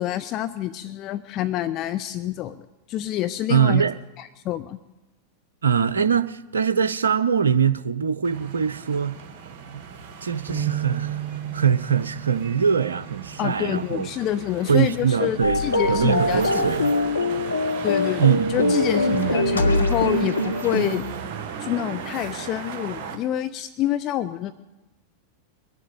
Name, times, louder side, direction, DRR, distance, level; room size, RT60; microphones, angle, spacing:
voice 1, 0.0-3.8 4.2-4.8 13.4-16.7 17.8-21.1 21.6-24.5, left 12 dB, 35° left, 0.6 m, -27 dB
voice 2, 3.5-4.0 5.6-9.2 9.7-9.8 10.2-11.2 11.5-14.1 14.7-15.6 15.9-16.9 18.2-18.7 19.1-19.4, right 7 dB, 70° right, 0.6 m, -22 dB
sound 1, 8.2-23.2, right 7 dB, 45° right, 1.7 m, -37 dB
sound 2, 10.5-14.7 15.2-15.5 16.3-16.7, right 10 dB, 5° left, 3.2 m, -34 dB
sound 3, 15.4-21.0, left 2 dB, 80° left, 0.9 m, -23 dB
22.0 x 7.3 x 8.6 m
figure-of-eight pair, 90°, 0 cm